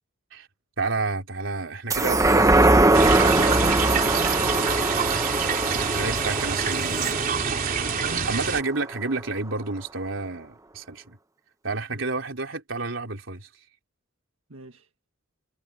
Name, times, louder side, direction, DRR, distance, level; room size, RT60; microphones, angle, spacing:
voice 1, 0.8-2.8 5.9-7.6 8.3-11.2 11.6-13.5, right 3 dB, 70° right, 3.8 m, -30 dB
sound 1, 1.9-8.7 9.1-9.2, right 2 dB, 15° right, 1.1 m, -22 dB
sound 2, 2.9-8.6, right 6 dB, 45° right, 3.3 m, -26 dB
voice 2, 3.1-4.8 8.0-8.3 11.9-12.1 14.5-14.9, right 3 dB, 90° right, 1.7 m, -37 dB
head